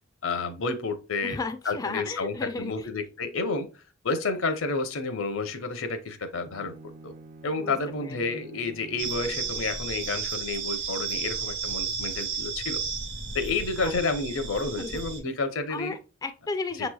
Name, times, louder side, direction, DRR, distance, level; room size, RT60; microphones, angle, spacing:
voice 1, 0.2-1.4 1.6-3.7 4.0-6.7 7.0-7.1 7.4-12.8 13.3-16.0, left 3 dB, 85° left, 0.7 m, -30 dB
voice 2, 1.2-2.9 7.6-8.2 13.8-13.9 14.8-15.0 15.7-16.9, left 3 dB, 20° left, 0.3 m, -34 dB
Bowed string instrument, 6.3-10.4, right 2 dB, 40° right, 0.5 m, -48 dB
sound 1, 9.0-15.2, right 5 dB, 65° right, 1.1 m, -33 dB
6.6 x 3.0 x 2.3 m
head